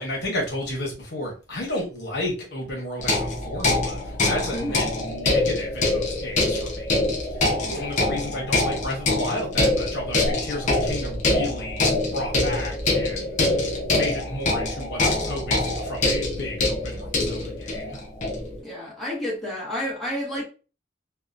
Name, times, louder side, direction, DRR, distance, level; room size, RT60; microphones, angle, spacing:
voice 1, 0.0-7.0 7.3-7.5 7.7-13.4 13.9-18.0, left 1 dB, 60° left, 1.0 m, -32 dB
sound 1, 3.0-18.6, left 2 dB, 40° left, 0.7 m, -24 dB
voice 2, 4.5-4.9 7.6-7.9 18.6-20.4, left 1 dB, ahead, 0.9 m, -30 dB
2.8 x 2.1 x 2.4 m
head